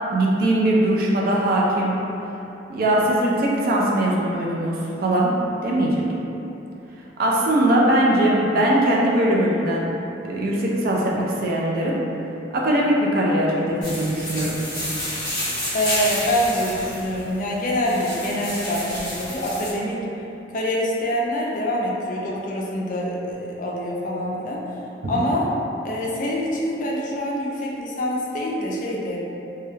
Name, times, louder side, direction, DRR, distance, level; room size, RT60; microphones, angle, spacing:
voice 1, 0.1-2.0 2.7-5.4 5.6-6.1 7.2-9.9 10.2-12.0 12.5-14.6, right 1 dB, 50° right, -3 dB, 0.3 m, -20 dB
sound 1, 13.8-19.7, left 1 dB, 20° left, 0.9 m, -30 dB
voice 2, 15.7-20.0 20.5-24.6 25.1-25.5 25.8-29.2, equal, 45° left, -4 dB, 0.4 m, -25 dB
2.2 x 2.1 x 3.1 m, 2.9 s
head